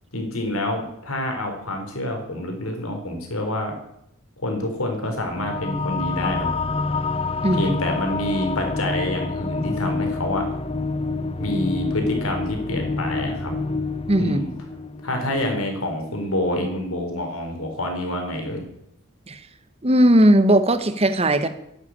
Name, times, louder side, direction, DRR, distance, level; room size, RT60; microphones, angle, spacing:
voice 1, 0.1-3.7 4.4-6.5 7.5-10.5 11.4-13.5 14.2-14.5 15.0-18.6, left 1 dB, 85° left, 4 dB, 4.1 m, -27 dB
sound 1, 5.2-16.1, left 3 dB, 25° left, 0.6 m, -28 dB
voice 2, 14.1-14.4 19.3-19.4 19.8-21.5, right 1 dB, 30° right, 10 dB, 1.2 m, -17 dB
12.0 x 10.0 x 8.7 m, 0.77 s
head